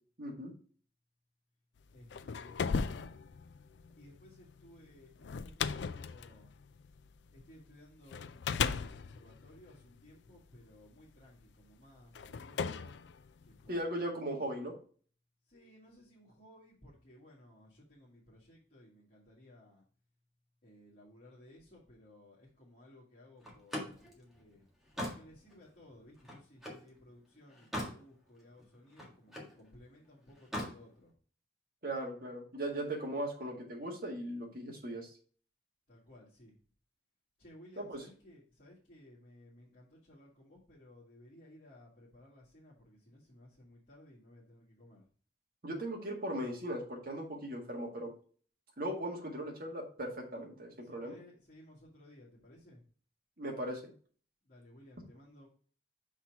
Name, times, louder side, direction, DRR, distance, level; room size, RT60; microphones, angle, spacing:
voice 1, 0.2-0.5 13.7-14.7 31.8-35.1 37.8-38.1 45.6-48.1 48.8-51.2 53.4-53.9, right 1 dB, 55° right, 0 dB, 1.9 m, -38 dB
sound 1, 1.9-7.5 8.1-10.6 11.4-11.5 12.1-13.8, left 6 dB, 75° left, 0.4 m, -37 dB
voice 2, 1.9-3.2 3.9-6.5 7.3-13.0 13.5-13.9 15.5-19.8 20.6-24.6 24.9-31.1 35.9-36.5 37.4-45.0 51.0-52.8 54.5-55.5, left 1 dB, 45° left, -7 dB, 2.0 m, -58 dB
Slam, 23.4-26.9 27.3-28.0 28.4-29.6 30.3-30.8, equal, ahead, 1.7 m, -41 dB
5.9 x 4.3 x 4.7 m, 0.43 s
head